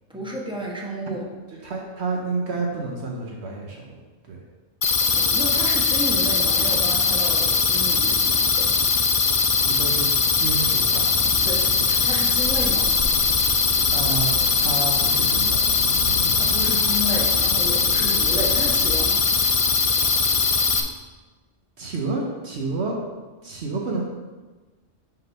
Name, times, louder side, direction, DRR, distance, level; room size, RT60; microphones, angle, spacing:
voice 1, 0.1-1.3 5.0-8.7 11.4-12.9 16.3-19.3, equal, 5° right, -3 dB, 1.0 m, -32 dB
voice 2, 1.5-4.0 4.3-4.4 9.6-10.1 10.3-11.1 13.9-15.6 21.8-23.0 23.4-24.0, right 3 dB, 65° right, -1 dB, 1.1 m, -29 dB
sound 1, 4.8-20.8, left 5 dB, 50° left, 0.4 m, -20 dB
sound 2, 11.0-19.0, left 2 dB, 90° left, 1.2 m, -35 dB
5.5 x 3.9 x 5.4 m, 1.3 s
omnidirectional pair, 1.3 m